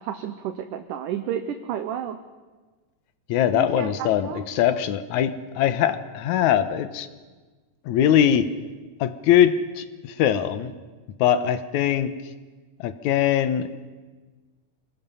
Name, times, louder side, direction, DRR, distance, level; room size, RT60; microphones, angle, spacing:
voice 1, 0.0-2.2 3.5-4.4, right 9 dB, 75° right, 7 dB, 2.4 m, -31 dB
voice 2, 3.3-7.1 7.9-8.5 9.0-10.7 11.2-12.1 12.8-13.7, left 10 dB, 70° left, 11 dB, 2.2 m, -21 dB
26.5 x 19.5 x 5.6 m, 1.3 s
omnidirectional pair, 3.8 m